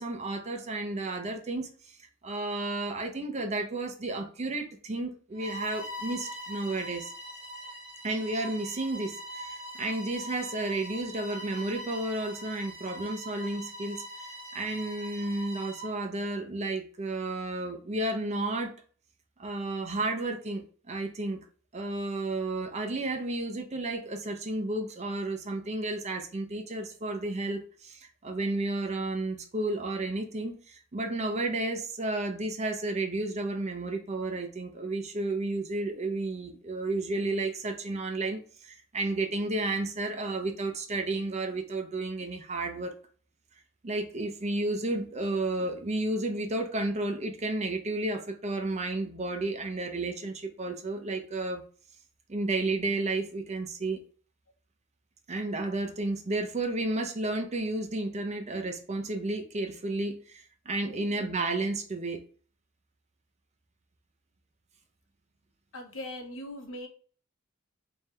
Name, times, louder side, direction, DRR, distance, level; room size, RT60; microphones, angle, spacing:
voice 1, 0.0-2.0 2.2-7.1 8.0-14.0 14.5-18.7 19.4-21.4 21.7-42.9 43.8-51.6 52.3-54.0 55.3-62.2, right 2 dB, 35° right, 5 dB, 0.6 m, -32 dB
Bowed string instrument, 5.3-16.0, equal, 15° right, 2.0 m, -42 dB
voice 2, 60.9-61.2 65.7-66.9, left 1 dB, 70° left, 3 dB, 0.9 m, -41 dB
3.4 x 3.3 x 3.2 m, 0.42 s
head